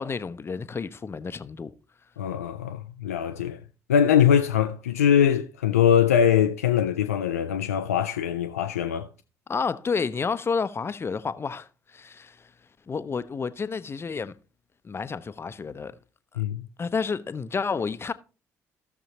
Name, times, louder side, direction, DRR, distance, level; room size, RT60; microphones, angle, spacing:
voice 1, 0.0-1.7 9.5-12.5 12.9-14.4 14.8-16.0 16.8-18.1, left 5 dB, 30° left, 0.6 m, -30 dB
voice 2, 2.2-3.6 3.9-9.1 16.4-16.7, left 9 dB, 80° left, 0.4 m, -22 dB
14.5 x 6.8 x 2.9 m
figure-of-eight pair, 45°, 8 cm